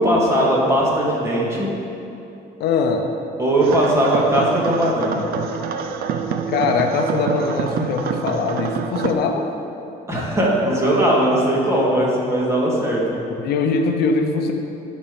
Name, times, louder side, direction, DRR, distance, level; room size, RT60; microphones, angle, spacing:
voice 1, 0.0-1.7 3.4-5.2 10.1-13.0, right 1 dB, 15° right, -5 dB, 2.1 m, -19 dB
voice 2, 2.6-3.1 6.5-9.4 13.4-14.5, left 4 dB, 70° left, 4 dB, 0.7 m, -21 dB
sound 1, 3.6-9.1, right 6 dB, 60° right, 0.6 m, -26 dB
11.5 x 4.4 x 5.2 m, 2.9 s
cardioid pair, 110°, 17 cm